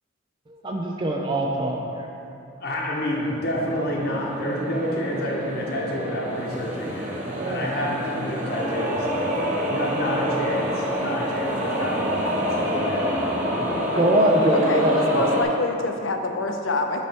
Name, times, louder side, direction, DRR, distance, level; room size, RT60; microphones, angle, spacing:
voice 1, 0.5-2.1 7.4-7.7 13.5-15.4, right 1 dB, 25° right, 0 dB, 0.4 m, -23 dB
voice 2, 2.6-7.1 7.4-9.3 9.7-13.5, left 1 dB, 50° left, -3 dB, 0.9 m, -29 dB
sound 1, 3.0-15.4, equal, 40° right, 1.0 m, -27 dB
voice 3, 14.5-17.1, left 2 dB, 75° left, 4 dB, 0.6 m, -25 dB
9.1 x 3.1 x 4.5 m, 2.6 s
head